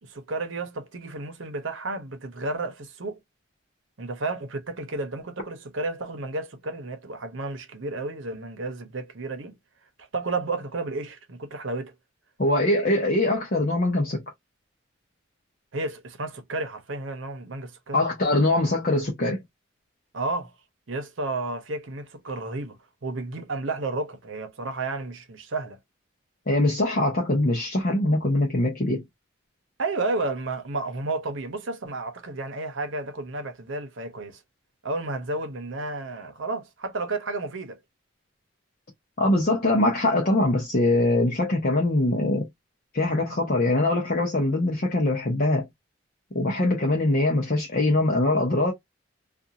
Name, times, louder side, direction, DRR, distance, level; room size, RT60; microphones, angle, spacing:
voice 1, 0.0-3.2 4.0-9.6 10.1-11.9 15.7-18.0 20.1-20.5 20.9-25.8 29.8-34.4 34.8-37.8, right 2 dB, 70° right, 0.8 m, -32 dB
voice 2, 12.4-14.2 17.9-19.4 26.5-29.0 39.2-42.5 42.9-45.7 46.3-48.7, left 2 dB, 45° left, 0.8 m, -22 dB
2.5 x 2.4 x 2.7 m
head